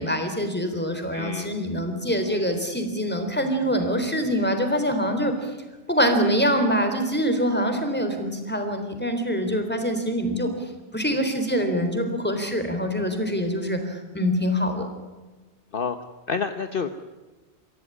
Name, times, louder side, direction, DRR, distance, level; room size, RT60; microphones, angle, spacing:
voice 1, 0.0-5.5 5.9-10.5 10.9-14.9, equal, 10° left, 6 dB, 3.7 m, -24 dB
voice 2, 1.1-1.5 15.7-16.0 16.3-16.9, left 5 dB, 55° left, 8 dB, 1.2 m, -28 dB
24.5 x 16.0 x 9.8 m, 1.2 s
omnidirectional pair, 1.2 m